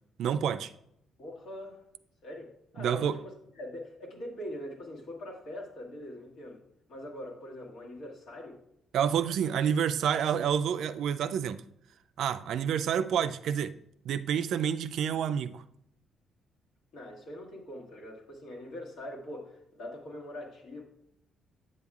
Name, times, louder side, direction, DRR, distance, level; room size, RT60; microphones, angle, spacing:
voice 1, 0.2-0.7 2.8-3.2 8.9-11.6 12.2-13.8 14.0-15.6, right 8 dB, 75° right, 0.3 m, -28 dB
voice 2, 1.2-1.8 2.2-6.6 6.9-8.6 16.9-20.8, left 1 dB, 80° left, 1.6 m, -43 dB
8.2 x 7.0 x 2.4 m
cardioid pair, 90°, 0 cm